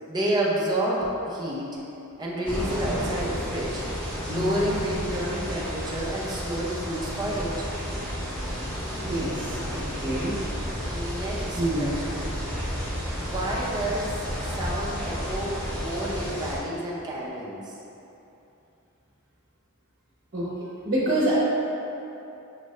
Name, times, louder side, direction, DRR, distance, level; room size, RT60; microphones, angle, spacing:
voice 1, 0.1-1.7 2.2-3.8 4.3-7.7 10.9-12.3 13.2-17.7, right 1 dB, 20° right, -5 dB, 0.6 m, -30 dB
sound 1, 2.4-16.6, equal, 10° left, 1.2 m, -32 dB
sound 2, 4.2-7.8, left 4 dB, 80° left, 1.4 m, -40 dB
voice 2, 8.9-10.4 11.6-11.9 20.3-20.5 20.8-21.3, right 1 dB, 40° right, -9 dB, 1.0 m, -27 dB
6.4 x 2.5 x 3.2 m, 2.9 s
head